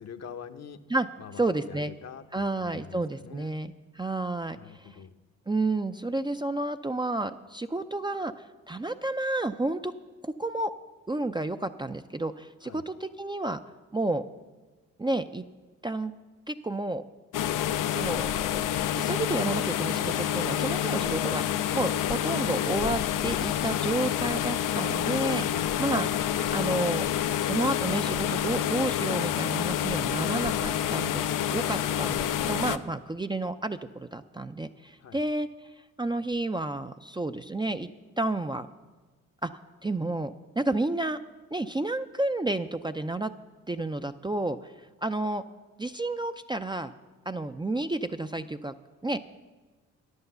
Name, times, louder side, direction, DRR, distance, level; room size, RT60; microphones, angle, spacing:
voice 1, 0.0-0.8 1.2-3.6 4.5-5.2 12.6-12.8 35.0-35.2, left 7 dB, 50° left, 8 dB, 0.9 m, -45 dB
voice 2, 1.4-1.9 2.3-4.9 5.5-9.9 10.2-10.7 11.1-13.6 13.9-14.2 15.0-15.4 15.8-16.1 16.5-17.0 17.9-18.3 18.9-25.4 25.8-27.1 27.4-35.5 36.0-37.9 38.2-38.7 39.4-39.5 39.8-41.2 41.5-43.3 43.7-44.7 45.0-45.4 45.8-46.9 47.3-48.7 49.0-49.2, right 2 dB, 15° right, 8 dB, 0.5 m, -31 dB
sound 1, 17.3-32.8, left 10 dB, 65° left, 0.6 m, -28 dB
sound 2, 19.9-24.1, right 3 dB, 75° right, 2.8 m, -52 dB
10.5 x 8.1 x 6.8 m, 1.3 s
supercardioid pair, 45°, 34 cm